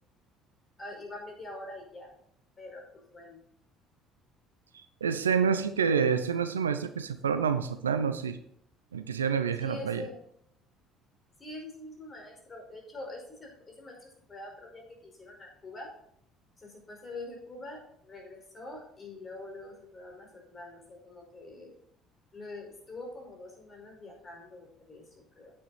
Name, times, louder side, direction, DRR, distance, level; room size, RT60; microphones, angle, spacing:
voice 1, 0.8-2.1 2.6-3.4 9.6-10.2 11.4-15.9 16.6-21.7 22.3-25.5, left 2 dB, 30° left, 1 dB, 5.2 m, -45 dB
voice 2, 4.7-8.4 8.9-10.0, right 6 dB, 85° right, 11 dB, 0.6 m, -28 dB
9.9 x 8.7 x 4.3 m, 0.68 s
figure-of-eight pair, 55°, 0 cm